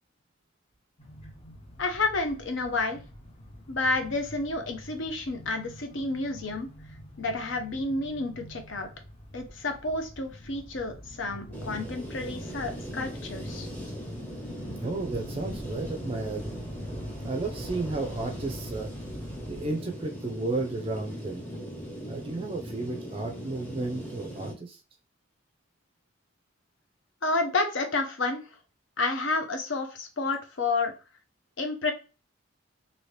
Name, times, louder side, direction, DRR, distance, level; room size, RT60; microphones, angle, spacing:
sound 1, 1.0-19.7, equal, 30° left, 0.8 m, -44 dB
voice 1, 1.8-3.0 3.7-6.7 7.2-8.9 9.3-13.7 27.2-28.4 29.0-30.9 31.6-31.9, left 3 dB, 65° left, 6 dB, 0.7 m, -30 dB
sound 2, 11.5-24.5, equal, 10° left, 1.0 m, -40 dB
voice 2, 14.8-16.5 17.2-18.9 19.5-21.4 22.1-24.8, right 3 dB, 25° right, 2 dB, 0.4 m, -33 dB
2.8 x 2.7 x 3.2 m, 0.33 s
head